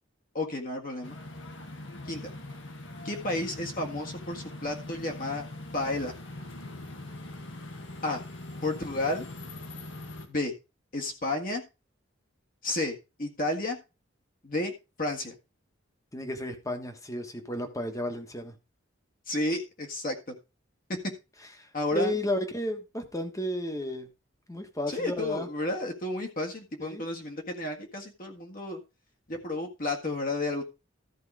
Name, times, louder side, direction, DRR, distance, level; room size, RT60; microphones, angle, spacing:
voice 1, 0.3-1.2 2.1-2.2 3.1-5.5 5.7-6.1 8.0-8.2 8.6-9.3 10.3-10.5 10.9-11.6 12.6-13.8 14.4-14.7 15.0-15.4 19.3-20.4 21.7-22.2 24.9-28.8 29.3-30.6, left 2 dB, 45° left, 2 dB, 1.7 m, -31 dB
sound 1, 1.0-10.3, left 2 dB, 75° left, 1.9 m, -42 dB
voice 2, 16.1-18.5 21.6-24.1 24.5-25.5 26.8-27.0, left 1 dB, 15° left, 6 dB, 1.4 m, -33 dB
14.0 x 4.7 x 4.9 m, 0.27 s
head